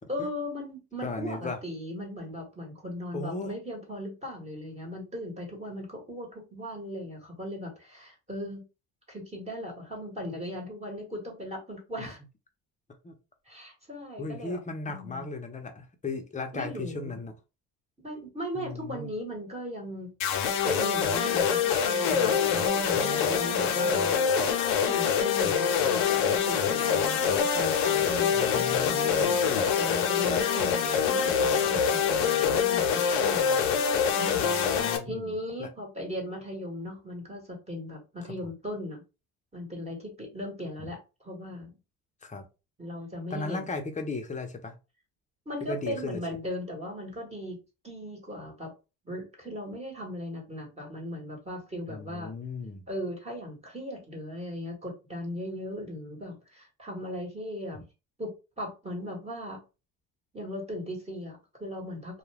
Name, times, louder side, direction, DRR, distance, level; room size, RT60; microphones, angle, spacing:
voice 1, 0.1-8.6 9.1-12.2 13.4-14.6 14.9-15.3 16.5-17.2 18.0-20.1 20.6-33.8 34.1-39.0 39.5-41.7 42.8-43.7 45.4-47.6 47.8-48.7 49.0-52.3 52.9-57.8 58.2-59.6 60.3-62.2, left 1 dB, 15° right, 0 dB, 1.2 m, -38 dB
voice 2, 1.0-1.6 3.1-3.5 13.0-13.1 14.2-17.3 18.6-19.1 22.9-23.8 28.3-29.4 34.4-35.3 35.6-35.7 42.2-42.4 43.3-44.8 45.7-46.2 51.9-52.8, left 3 dB, 20° left, 6 dB, 0.7 m, -36 dB
sound 1, 20.2-35.0, left 7 dB, 85° left, 0.7 m, -25 dB
2.3 x 2.3 x 3.3 m, 0.29 s
supercardioid pair, 85°, 38 cm